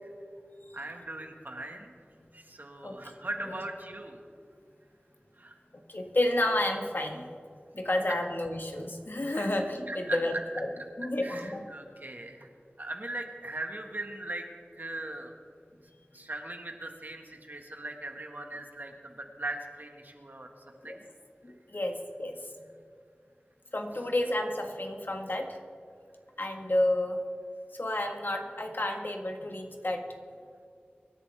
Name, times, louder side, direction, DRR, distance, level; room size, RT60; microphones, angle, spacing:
voice 1, 0.7-1.9 2.3-4.3 5.4-5.6 8.1-8.2 9.3-9.5 9.9-10.4 11.2-12.5 12.8-14.4 14.7-15.3 16.1-20.5 20.8-21.0, right 2 dB, 55° right, 3 dB, 1.7 m, -39 dB
voice 2, 5.9-7.3 7.7-10.7 11.0-11.6 20.8-21.0 21.4-22.3 23.7-25.6 26.4-27.2 27.8-30.0, left 1 dB, 65° left, 3 dB, 1.6 m, -30 dB
25.0 x 11.0 x 3.5 m, 2.3 s
wide cardioid pair, 50°, 4 cm